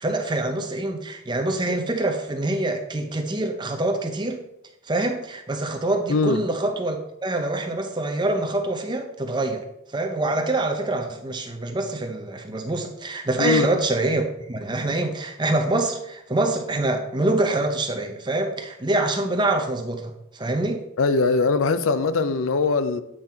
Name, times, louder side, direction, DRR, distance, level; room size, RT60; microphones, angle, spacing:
voice 1, 0.0-4.4 4.8-20.8, right 2 dB, 20° right, 0.7 m, -25 dB
voice 2, 6.1-6.4 13.4-13.7 21.0-23.0, left 4 dB, 85° left, 0.5 m, -21 dB
8.7 x 4.0 x 4.3 m
head